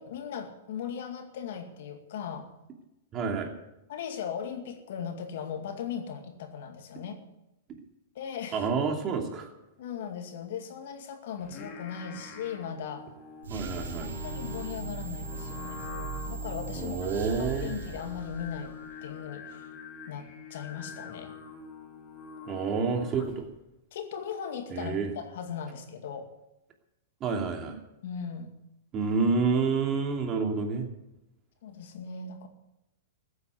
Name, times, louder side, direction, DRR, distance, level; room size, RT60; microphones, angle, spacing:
voice 1, 0.0-2.5 3.9-7.2 8.1-8.7 9.8-13.1 13.8-15.8 16.3-18.7 19.0-19.6 20.1-21.3 22.5-22.6 23.9-26.3 28.0-28.5 31.6-32.5, left 7 dB, 65° left, 5 dB, 2.2 m, -38 dB
voice 2, 3.1-3.5 8.5-9.5 13.5-14.1 16.8-17.8 22.5-23.5 24.7-25.1 27.2-27.8 28.9-30.9, right 5 dB, 30° right, 3 dB, 2.7 m, -28 dB
Singing, 11.4-23.6, left 5 dB, 35° left, 3.1 m, -45 dB
sound 1, 13.4-18.9, right 4 dB, 80° right, 3.2 m, -38 dB
15.0 x 8.7 x 8.1 m, 0.93 s
hypercardioid pair, 115°, 0 cm